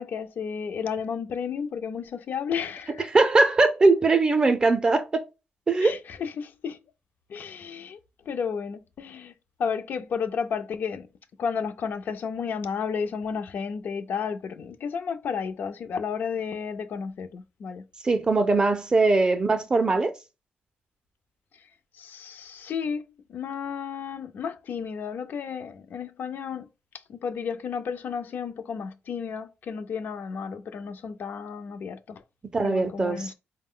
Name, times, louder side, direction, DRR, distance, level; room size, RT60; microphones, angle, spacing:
voice 1, 0.0-3.1 5.8-6.8 7.3-8.0 8.3-9.3 9.6-11.1 11.4-17.8 22.0-26.7 27.1-32.2 32.6-33.3, left 6 dB, 55° left, 0.5 m, -32 dB
voice 2, 3.0-5.2 5.7-6.0 18.0-20.1 32.5-33.3, right 3 dB, 20° right, 0.5 m, -21 dB
4.5 x 2.1 x 3.6 m
wide cardioid pair, 170°, 4 cm